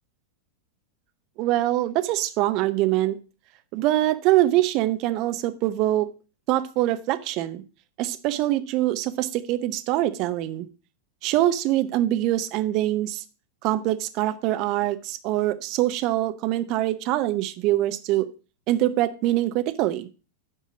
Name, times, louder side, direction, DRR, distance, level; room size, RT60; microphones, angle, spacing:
voice 1, 1.4-3.2 3.7-6.1 6.5-7.6 8.0-10.7 11.2-13.2 13.6-18.3 18.7-20.1, right 15 dB, 40° right, 11 dB, 0.7 m, -24 dB
7.8 x 4.7 x 5.9 m, 0.34 s
figure-of-eight pair, 90°, 0 cm